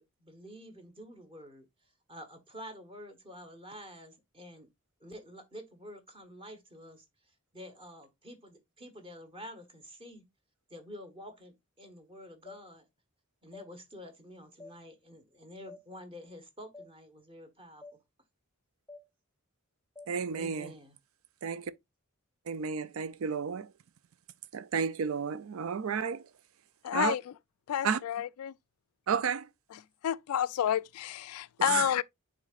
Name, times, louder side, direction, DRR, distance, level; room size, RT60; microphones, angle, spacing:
voice 1, 0.0-1.7 2.1-4.7 5.0-10.3 10.7-12.8 13.4-17.8 20.3-21.0, equal, 25° right, 1.2 m, -49 dB
sound 1, 12.5-12.6 13.5-13.7 14.6-14.8 15.7-15.8 16.7-16.9 17.8-18.0 18.9-19.0 20.0-20.1, left 2 dB, 10° left, 0.4 m, -48 dB
voice 2, 20.1-20.7 21.4-21.7 22.5-23.7 24.5-26.3 26.9-27.1 27.8-28.0 29.1-29.5 31.6-31.9, right 6 dB, 70° right, 0.5 m, -32 dB
voice 3, 26.8-27.3 27.7-28.5 29.7-32.0, left 10 dB, 85° left, 0.3 m, -30 dB
10.5 x 3.8 x 2.4 m
head